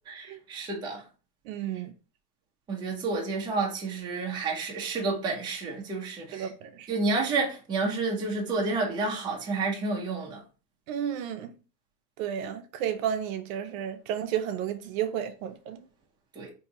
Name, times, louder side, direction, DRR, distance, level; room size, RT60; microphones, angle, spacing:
voice 1, 0.1-1.0 2.7-6.5 6.9-10.4 16.4-16.5, right 3 dB, 10° right, 0.5 m, -30 dB
voice 2, 1.5-1.9 6.3-6.9 10.9-11.5 12.2-15.8, right 9 dB, 55° right, 0.5 m, -32 dB
3.7 x 2.7 x 2.8 m
supercardioid pair, 140°, 50 cm